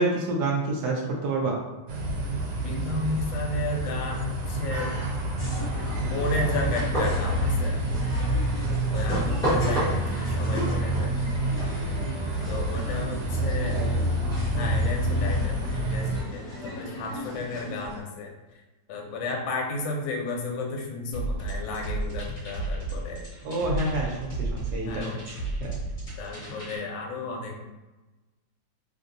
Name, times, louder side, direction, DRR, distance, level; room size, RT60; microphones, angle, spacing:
voice 1, 0.0-1.6 8.7-8.8 13.4-13.9 23.4-25.3 25.6-25.7, right 2 dB, 70° right, -1 dB, 1.0 m, -28 dB
sound 1, 1.9-16.2, right 1 dB, 85° right, 1.5 m, -28 dB
voice 2, 2.6-5.0 6.0-7.9 8.9-11.1 12.5-13.9 14.5-18.3 18.9-23.2 24.8-25.2 26.2-27.6, left 2 dB, 80° left, 1 dB, 1.3 m, -33 dB
sound 2, 5.4-18.0, equal, 5° left, 0.7 m, -34 dB
sound 3, 21.1-26.8, right 2 dB, 30° left, 1.2 m, -33 dB
3.3 x 2.6 x 2.5 m, 1.1 s
omnidirectional pair, 2.1 m